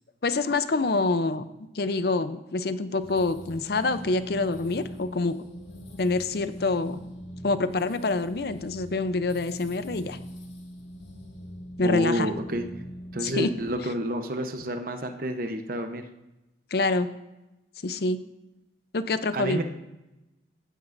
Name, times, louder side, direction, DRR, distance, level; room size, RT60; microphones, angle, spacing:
voice 1, 0.2-1.4 1.7-5.3 6.0-7.0 7.4-10.2 11.8-12.3 13.2-13.5 16.7-17.1 17.8-18.2 18.9-19.6, left 3 dB, 55° left, 12 dB, 0.6 m, -26 dB
sound 1, 3.0-13.8, equal, 70° left, 2.1 m, -41 dB
voice 2, 11.8-12.6 13.1-16.0 19.3-19.6, equal, 50° right, 7 dB, 0.8 m, -29 dB
15.0 x 9.1 x 2.6 m, 0.98 s
head